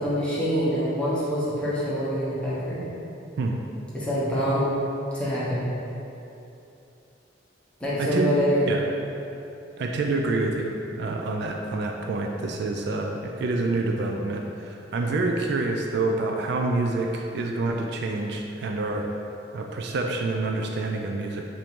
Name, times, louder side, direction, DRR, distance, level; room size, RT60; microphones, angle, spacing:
voice 1, 0.0-2.9 3.9-4.7 5.1-5.7 7.8-8.7, equal, 5° left, -10 dB, 1.1 m, -25 dB
voice 2, 8.0-8.3 8.7-8.8 9.8-19.1 19.5-21.5, right 2 dB, 65° right, 2 dB, 0.3 m, -27 dB
5.4 x 2.7 x 3.6 m, 2.8 s
head